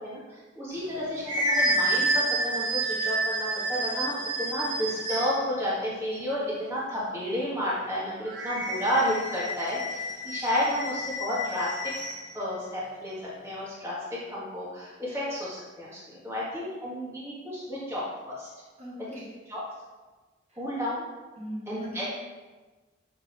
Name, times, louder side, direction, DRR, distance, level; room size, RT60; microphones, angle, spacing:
voice 1, 0.0-11.7 12.3-13.1 13.4-18.5 19.0-19.2 19.5-19.6 20.6-21.0 21.7-22.0, left 1 dB, 15° right, -8 dB, 1.5 m, -31 dB
sound 1, 0.8-5.5 8.3-12.3, right 1 dB, 75° right, 1.6 m, -29 dB
voice 2, 18.8-19.3 20.5-20.6 21.4-22.1, equal, 35° right, -6 dB, 1.6 m, -40 dB
6.8 x 4.9 x 3.5 m, 1.3 s
head